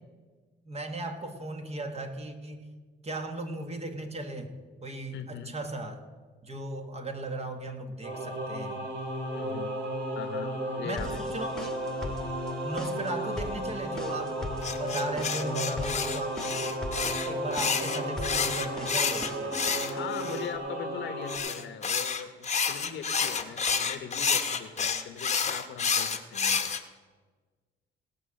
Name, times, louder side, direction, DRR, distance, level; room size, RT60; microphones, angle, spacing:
voice 1, 0.7-2.7 3.0-4.5 4.8-6.0 6.4-8.9 10.8-11.8 12.6-16.7 17.0-19.6, right 2 dB, 30° right, 5 dB, 1.6 m, -37 dB
voice 2, 5.1-5.6 9.3-9.7 10.1-11.2 19.9-26.7, left 8 dB, 70° left, 8 dB, 1.0 m, -41 dB
Singing / Musical instrument, 8.0-21.4, right 1 dB, 65° right, 2.4 m, -34 dB
sound 1, 11.0-20.6, left 1 dB, 5° left, 1.5 m, -39 dB
sound 2, 14.6-20.5 21.3-26.8, left 6 dB, 35° left, 1.0 m, -29 dB
18.0 x 6.2 x 6.4 m, 1.4 s
cardioid pair, 90°, 20 cm